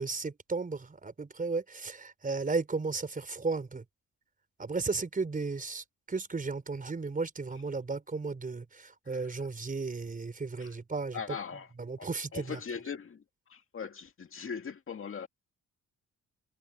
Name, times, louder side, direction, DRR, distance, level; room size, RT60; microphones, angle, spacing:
voice 1, 0.0-3.8 4.6-11.2 11.8-12.6, right 4 dB, 25° right, 4.4 m, -34 dB
voice 2, 11.1-13.2 13.5-15.3, left 6 dB, 45° left, 2.2 m, -40 dB
cardioid pair, 90°, 30 cm